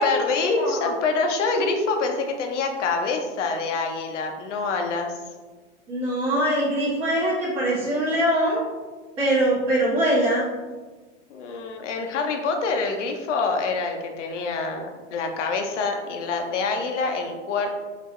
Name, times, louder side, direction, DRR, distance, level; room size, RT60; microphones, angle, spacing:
voice 1, 0.0-5.1 11.3-17.7, left 4 dB, 75° left, 3 dB, 0.8 m, -26 dB
voice 2, 0.6-0.9 5.9-8.6 9.2-10.4, right 1 dB, 15° right, -12 dB, 1.3 m, -22 dB
3.7 x 2.8 x 3.1 m, 1.3 s
hypercardioid pair, 155°, 37 cm